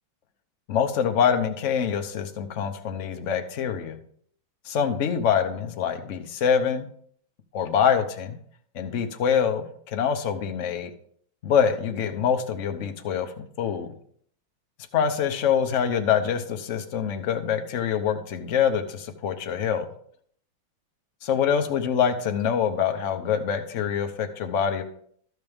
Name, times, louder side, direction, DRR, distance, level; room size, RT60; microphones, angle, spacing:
voice 1, 0.7-4.0 4.7-6.9 7.5-8.4 8.7-10.9 11.4-13.9 14.9-19.9 21.2-24.8, left 7 dB, 55° left, 7 dB, 0.9 m, -25 dB
13.0 x 6.2 x 3.5 m, 0.62 s
omnidirectional pair, 2.2 m